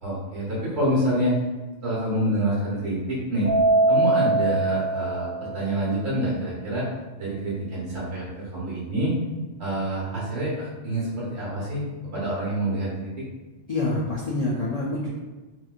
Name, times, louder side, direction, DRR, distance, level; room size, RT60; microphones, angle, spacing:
voice 1, 0.0-1.4 1.8-3.5 3.9-6.9 7.2-9.1 9.6-11.8 12.1-13.2, right 1 dB, 60° right, -6 dB, 1.5 m, -27 dB
Keyboard (musical), 3.4-5.9, right 2 dB, 75° right, 1.2 m, -22 dB
voice 2, 13.7-15.1, left 2 dB, 60° left, -4 dB, 0.4 m, -26 dB
3.1 x 2.9 x 2.3 m, 1.2 s
omnidirectional pair, 1.2 m